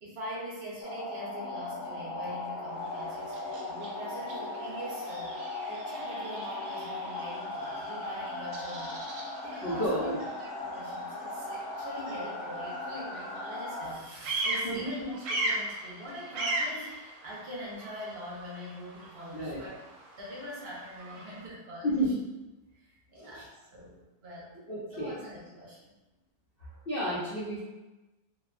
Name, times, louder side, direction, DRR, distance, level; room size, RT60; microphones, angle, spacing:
voice 1, 0.0-5.4 5.7-19.8 20.2-21.9 22.8-24.5 24.9-26.0, equal, 55° right, -6 dB, 0.7 m, -43 dB
sound 1, 0.8-13.9, left 2 dB, 75° left, 1.2 m, -38 dB
Bird vocalization bird call bird song, 2.7-21.5, right 2 dB, 75° right, 1.1 m, -40 dB
voice 2, 9.6-10.2 14.6-14.8 19.3-19.6 21.8-22.2 23.2-23.5 24.7-25.1 26.6-27.6, equal, 55° left, -10 dB, 0.6 m, -31 dB
2.8 x 2.2 x 2.4 m, 1.1 s
omnidirectional pair, 1.8 m